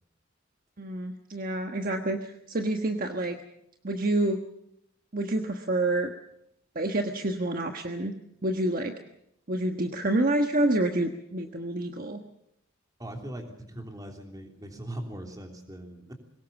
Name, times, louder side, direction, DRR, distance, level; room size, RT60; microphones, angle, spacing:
voice 1, 0.8-3.4 3.8-4.4 5.1-6.1 6.7-8.1 8.4-9.0 9.5-12.2, right 1 dB, 45° right, 4 dB, 1.3 m, -28 dB
voice 2, 13.0-16.1, right 1 dB, 20° right, 3 dB, 3.3 m, -40 dB
22.5 x 19.0 x 7.1 m, 0.76 s
head